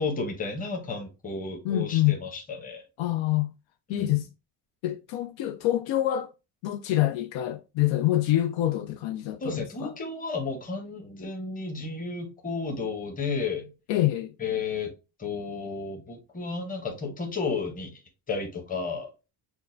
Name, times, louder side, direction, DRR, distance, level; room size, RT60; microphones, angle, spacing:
voice 1, 0.0-2.8 3.9-4.2 9.4-13.7 14.4-14.9 15.2-18.0 18.3-19.1, left 4 dB, 20° left, 0.9 m, -32 dB
voice 2, 1.6-2.2 3.0-3.5 3.9-4.3 4.8-6.3 6.6-9.9 13.9-14.3, left 14 dB, 80° left, 0.5 m, -26 dB
6.2 x 2.2 x 2.6 m
cardioid pair, 170°, 45 cm